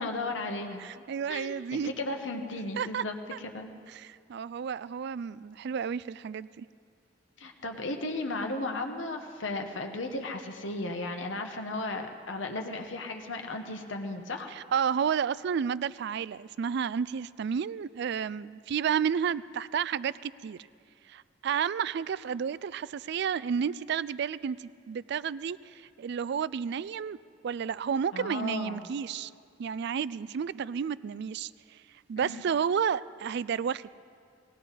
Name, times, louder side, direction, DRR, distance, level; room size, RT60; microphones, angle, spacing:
voice 1, 0.0-0.8 1.3-3.7 7.4-14.5 28.1-28.9 32.2-32.4, left 2 dB, 80° left, 4 dB, 1.2 m, -35 dB
voice 2, 0.8-1.9 2.8-3.0 3.3-3.4 3.9-6.7 14.5-20.6 21.1-25.6 26.0-27.2 27.4-29.3 29.6-31.5 32.1-33.8, right 7 dB, 60° right, 19 dB, 0.3 m, -31 dB
20.0 x 17.5 x 4.1 m, 2.3 s
head